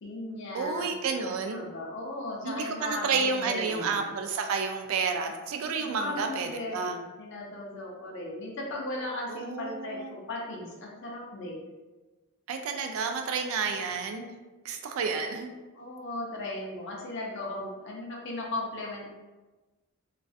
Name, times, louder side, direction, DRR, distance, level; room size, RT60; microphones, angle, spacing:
voice 1, 0.0-0.9 1.2-4.0 5.8-11.6 15.7-19.1, left 2 dB, 55° left, -3 dB, 0.5 m, -37 dB
voice 2, 0.5-1.6 2.4-7.0 9.3-10.1 12.5-14.3 14.6-15.5, right 5 dB, 70° right, 5 dB, 0.3 m, -30 dB
2.4 x 2.3 x 2.3 m, 1.2 s
head